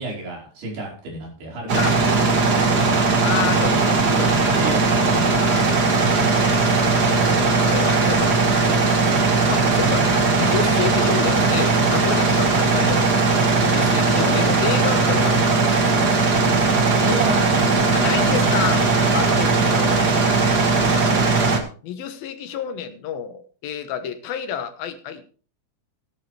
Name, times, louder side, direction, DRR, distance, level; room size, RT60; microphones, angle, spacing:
voice 1, 0.0-2.1 2.4-3.2 4.6-5.7 10.4-10.9 11.3-11.4 12.8-13.0 14.1-14.5 17.0-18.4, right 1 dB, 75° right, -2 dB, 6.9 m, -31 dB
sound 1, 1.7-21.6, right 3 dB, 50° right, 1.2 m, -18 dB
voice 2, 3.2-4.6 5.3-5.8 7.0-8.9 9.3-13.2 13.6-15.8 17.9-18.9 19.1-20.1 20.9-21.2 21.8-25.3, left 8 dB, 70° left, 8 dB, 2.8 m, -30 dB
16.5 x 11.0 x 3.3 m, 0.40 s
omnidirectional pair, 4.6 m